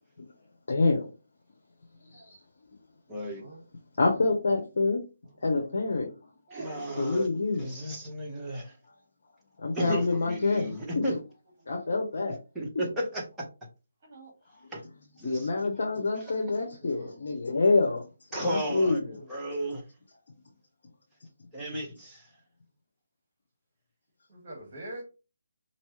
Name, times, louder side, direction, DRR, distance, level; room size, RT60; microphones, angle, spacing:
voice 1, 0.7-1.1 2.1-2.4 4.0-5.0 5.4-6.1 7.0-7.6 8.4-8.5 9.6-11.1 11.7-12.4 15.2-18.1 18.3-19.1, left 3 dB, 60° left, 1.0 m, -27 dB
voice 2, 2.0-2.3 3.3-3.6 5.5-5.7 6.5-6.7 14.0-14.3 16.8-17.1 19.0-19.3 24.3-25.0, right 1 dB, 35° right, 1.8 m, -45 dB
voice 3, 3.1-3.4 6.5-7.3 7.6-8.7 9.7-11.2 12.5-13.5 14.7-14.8 15.2-15.5 16.1-16.2 18.3-19.0 19.3-19.8 21.5-22.3, equal, 5° right, 1.3 m, -34 dB
4.5 x 3.0 x 3.2 m
figure-of-eight pair, 150°, 0 cm